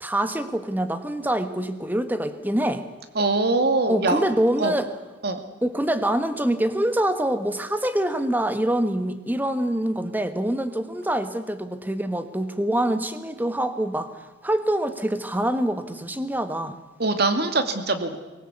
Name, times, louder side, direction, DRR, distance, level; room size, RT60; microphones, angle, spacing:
voice 1, 0.0-2.8 3.9-4.9 5.6-14.1 14.4-16.8, right 1 dB, 10° right, 10 dB, 1.5 m, -25 dB
voice 2, 3.2-4.2 4.6-4.8 5.2-5.4 17.0-18.2, right 3 dB, 55° right, 8 dB, 2.4 m, -22 dB
23.5 x 19.5 x 8.3 m, 1.2 s
head